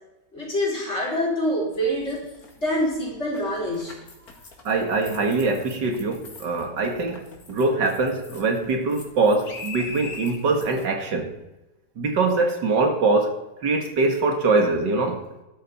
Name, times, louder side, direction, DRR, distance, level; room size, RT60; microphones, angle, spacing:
voice 1, 0.3-2.2 2.6-3.9, equal, 40° left, -4 dB, 4.7 m, -25 dB
sound 1, 1.7-10.9, left 3 dB, 55° left, 2.4 m, -42 dB
voice 2, 4.6-11.3 12.0-15.2, right 3 dB, 85° right, 4 dB, 2.5 m, -23 dB
12.5 x 12.5 x 4.2 m, 0.94 s
omnidirectional pair, 1.9 m